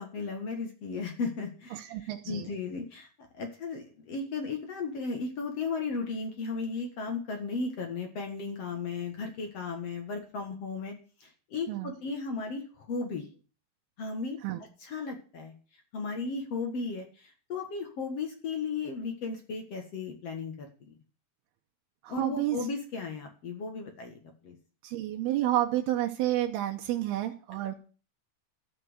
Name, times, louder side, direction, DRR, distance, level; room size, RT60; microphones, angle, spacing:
voice 1, 0.0-3.1 3.3-11.0 11.2-13.2 14.0-14.4 14.8-15.5 15.9-20.9 22.1-24.6, left 4 dB, 50° left, 4 dB, 2.2 m, -35 dB
voice 2, 1.7-2.5 11.7-11.9 14.4-14.6 22.0-22.6 24.8-27.7, right 13 dB, 85° right, 3 dB, 2.9 m, -30 dB
13.5 x 5.9 x 8.0 m, 0.38 s
omnidirectional pair, 4.5 m